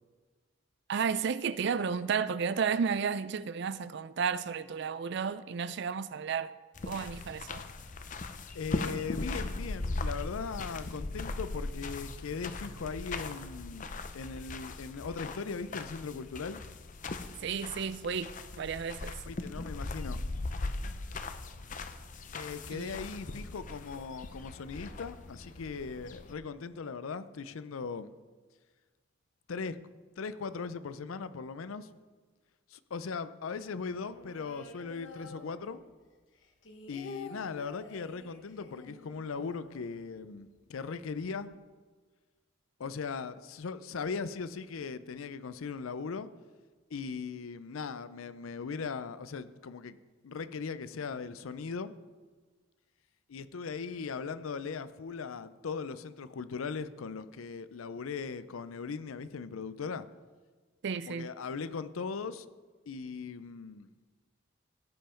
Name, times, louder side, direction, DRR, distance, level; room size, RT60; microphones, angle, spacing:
voice 1, 0.9-6.5 6.9-7.6 17.4-18.3 18.6-19.2 22.7-23.0 60.8-61.3, right 6 dB, 55° right, 0.4 m, -32 dB
sound 1, 6.7-26.3, left 2 dB, 40° left, 0.5 m, -39 dB
voice 2, 8.5-16.6 19.3-20.3 22.3-28.1 29.5-29.8 30.2-31.9 32.7-35.8 36.9-41.6 42.8-46.3 46.9-50.0 50.2-52.0 53.3-60.1 61.1-62.5 62.9-63.9, left 5 dB, 90° left, 0.5 m, -39 dB
sound 2, 33.9-36.0 36.3-40.3 40.6-40.7 40.9-41.4, left 3 dB, 65° left, 1.2 m, -49 dB
16.5 x 5.6 x 4.4 m
head